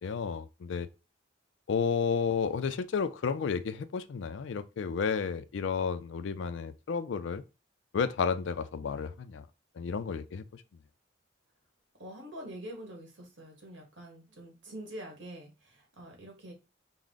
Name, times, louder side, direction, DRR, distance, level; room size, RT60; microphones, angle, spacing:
voice 1, 0.0-0.9 1.7-7.4 7.9-9.4 9.8-10.6, left 6 dB, 70° left, 0.4 m, -32 dB
voice 2, 12.0-16.5, right 1 dB, 70° right, 1.6 m, -45 dB
4.6 x 2.1 x 3.8 m
head